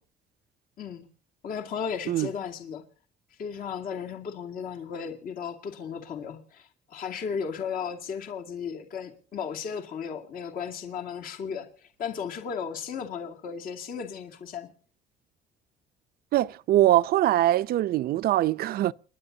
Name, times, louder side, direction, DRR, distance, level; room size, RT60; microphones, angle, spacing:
voice 1, 0.8-1.1 1.4-2.8 3.4-14.7, left 7 dB, 60° left, 2.4 m, -35 dB
voice 2, 16.3-18.9, right 14 dB, 65° right, 0.6 m, -22 dB
29.5 x 11.0 x 2.8 m
cardioid pair, 110°, 17 cm